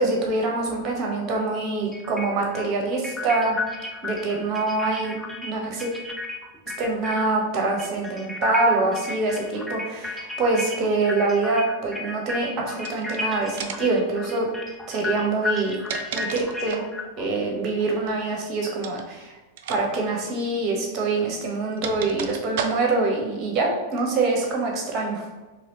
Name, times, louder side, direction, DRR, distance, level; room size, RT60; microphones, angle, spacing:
voice 1, 0.0-3.5 4.0-5.9 6.8-14.5 14.9-15.7 16.1-16.8 17.2-19.4 19.7-25.2, right 3 dB, 35° right, 0 dB, 1.2 m, -25 dB
sound 1, 0.7-0.8 1.9-7.4 7.7-17.9, left 3 dB, 5° left, 0.5 m, -33 dB
sound 2, 12.8-13.2 13.6-14.0 15.5-17.0 18.8-19.1 19.6-19.8 20.1-20.2 21.2-23.1, right 6 dB, 50° right, 0.4 m, -33 dB
4.7 x 3.3 x 3.1 m, 1.2 s
figure-of-eight pair, 90°, 0 cm